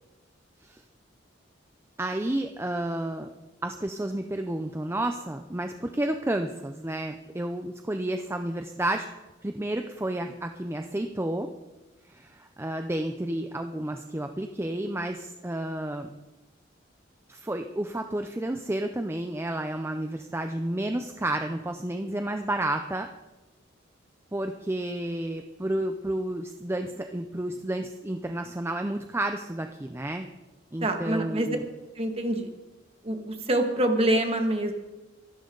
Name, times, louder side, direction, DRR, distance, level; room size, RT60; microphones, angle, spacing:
voice 1, 2.0-3.3 3.6-9.1 9.4-11.5 12.1-16.1 17.3-23.1 24.3-30.2 30.7-31.7, right 1 dB, 15° right, 6 dB, 0.6 m, -31 dB
voice 2, 30.8-31.6 32.0-32.5 33.0-34.7, right 1 dB, 30° right, 4 dB, 1.9 m, -26 dB
24.5 x 12.0 x 4.0 m, 1.1 s
head